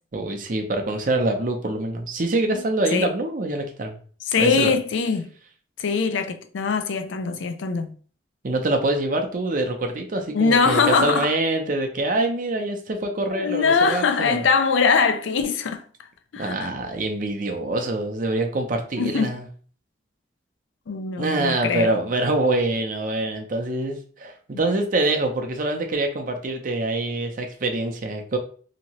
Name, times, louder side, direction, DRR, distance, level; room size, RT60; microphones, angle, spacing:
voice 1, 0.1-4.0 4.4-4.7 8.4-14.4 16.4-19.5 21.2-28.4, right 2 dB, 45° right, 0.6 m, -25 dB
voice 2, 4.3-5.3 5.8-7.9 10.3-11.3 13.3-15.8 16.3-16.7 19.0-19.4 20.9-21.9 24.5-24.6, left 5 dB, 90° left, 0.4 m, -22 dB
2.9 x 2.7 x 2.9 m
head